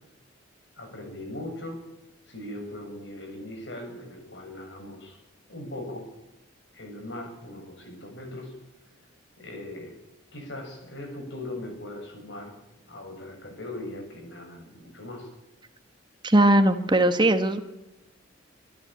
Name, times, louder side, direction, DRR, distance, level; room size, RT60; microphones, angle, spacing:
voice 1, 0.8-1.8 2.3-5.2 5.5-6.1 6.7-8.6 9.4-10.0 10.3-12.6 12.9-15.3, left 1 dB, 65° left, 4 dB, 7.3 m, -39 dB
voice 2, 16.2-17.6, right 1 dB, 25° right, 8 dB, 1.3 m, -19 dB
25.5 x 12.5 x 8.9 m, 1.0 s
head